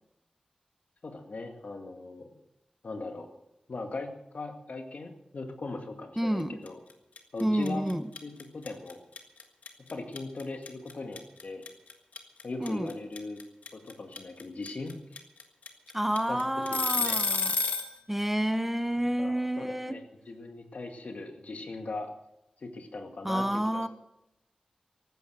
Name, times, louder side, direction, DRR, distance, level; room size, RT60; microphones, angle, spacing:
voice 1, 1.0-2.3 2.8-3.3 3.7-6.8 7.3-9.0 9.8-11.6 12.4-13.4 13.7-15.2 16.3-16.4 16.7-17.2 19.2-22.1 22.6-23.9, left 3 dB, 70° left, 4 dB, 2.1 m, -39 dB
voice 2, 6.2-6.6 7.4-8.1 12.6-12.9 15.9-17.5 18.1-20.0 23.2-23.9, right 1 dB, 10° right, 11 dB, 1.1 m, -29 dB
sound 1, 6.7-6.9 7.2-17.9, left 3 dB, 90° left, 1.6 m, -30 dB
15.0 x 12.5 x 6.4 m, 0.87 s
cardioid pair, 45°, 3 cm